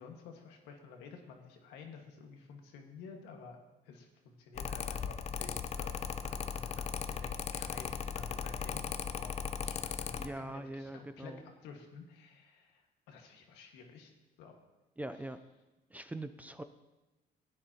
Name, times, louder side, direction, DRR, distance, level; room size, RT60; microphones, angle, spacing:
voice 1, 0.0-3.6 3.8-14.1 14.4-14.6 15.1-15.2, left 5 dB, 90° left, 3 dB, 1.7 m, -52 dB
Mechanical fan, 4.5-10.3, left 7 dB, 40° left, 0.6 m, -37 dB
voice 2, 10.2-11.4 15.0-15.4 15.9-16.6, right 1 dB, 10° right, 10 dB, 0.5 m, -42 dB
16.5 x 9.8 x 2.9 m, 1.1 s
cardioid pair, 110°, 17 cm